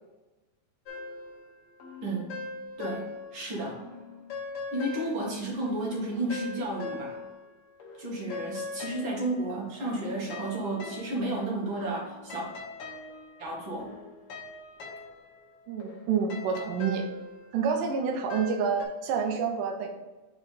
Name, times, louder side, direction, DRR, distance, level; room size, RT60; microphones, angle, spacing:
sound 1, 0.9-3.5 3.8-7.5 7.8-18.8, left 4 dB, 65° left, 1.4 m, -42 dB
voice 1, 2.8-3.8 4.7-7.2 8.0-12.5 13.4-13.9, right 2 dB, 45° right, -3 dB, 2.1 m, -32 dB
voice 2, 15.7-17.1 17.5-19.9, right 6 dB, 90° right, 2 dB, 2.4 m, -28 dB
5.7 x 4.4 x 4.1 m, 1.2 s
omnidirectional pair, 3.8 m